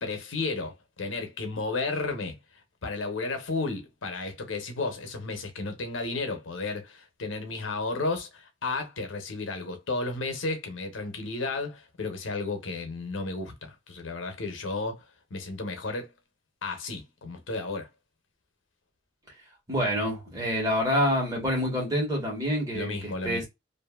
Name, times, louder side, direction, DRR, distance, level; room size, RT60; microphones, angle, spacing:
voice 1, 0.0-2.4 2.8-15.0 15.3-16.1 16.6-17.9 22.7-23.5, left 3 dB, 85° left, 0.8 m, -33 dB
voice 2, 19.7-23.5, equal, 20° right, 1.2 m, -27 dB
2.6 x 2.5 x 2.3 m
head